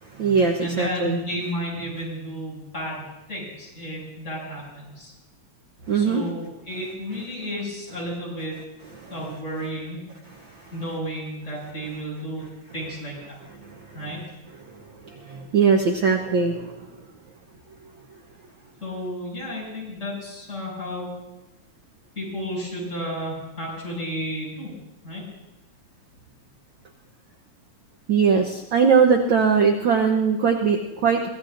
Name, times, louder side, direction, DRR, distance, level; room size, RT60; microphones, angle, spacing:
voice 1, 0.0-1.2 5.9-6.2 9.0-9.1 10.3-10.7 13.6-14.0 14.7-17.0 28.1-31.3, right 5 dB, 70° right, 2 dB, 1.1 m, -21 dB
voice 2, 0.6-5.1 5.9-8.6 9.1-10.0 10.7-13.4 13.9-14.2 18.8-21.1 22.2-24.7 25.0-25.2, equal, 20° left, -5 dB, 7.2 m, -32 dB
24.5 x 16.5 x 2.6 m, 0.99 s
omnidirectional pair, 3.3 m